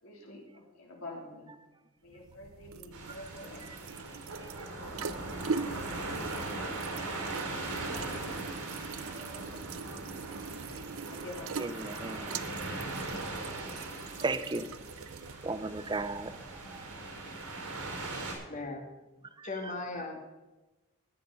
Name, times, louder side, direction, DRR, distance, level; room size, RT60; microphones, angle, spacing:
voice 1, 0.0-1.5 2.0-6.4 11.1-11.7, left 2 dB, 70° left, -2 dB, 3.4 m, -49 dB
sound 1, 2.1-17.1, right 5 dB, 65° right, 0.6 m, -42 dB
sound 2, 2.9-18.3, right 2 dB, 90° right, 4.6 m, -40 dB
voice 2, 11.6-12.4 14.2-14.7 15.4-16.3 19.4-19.7, right 3 dB, 20° right, 12 dB, 0.6 m, -35 dB
voice 3, 18.5-18.8 19.4-20.3, left 3 dB, 35° left, 2 dB, 1.7 m, -39 dB
14.0 x 10.5 x 5.4 m, 1.1 s
head